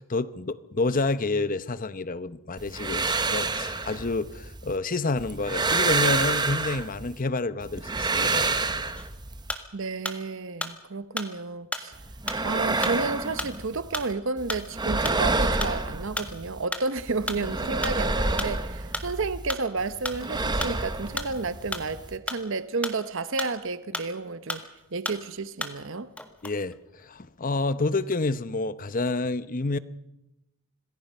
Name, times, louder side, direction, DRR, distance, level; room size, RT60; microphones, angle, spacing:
voice 1, 0.0-8.5 26.4-29.8, left 3 dB, 40° left, 0.8 m, -29 dB
sound 1, 2.6-4.8 5.2-7.2 7.6-9.5 11.9-14.1 14.4-16.6 17.0-19.5 19.8-22.2, right 3 dB, 20° right, 1.1 m, -28 dB
sound 2, 8.9-10.3 10.6-24.2 24.5-25.9 26.2-27.4 27.8-28.4, left 1 dB, 5° left, 1.6 m, -35 dB
voice 2, 9.7-12.0 12.4-26.1, right 3 dB, 60° right, 0.9 m, -31 dB
26.5 x 20.5 x 5.5 m
head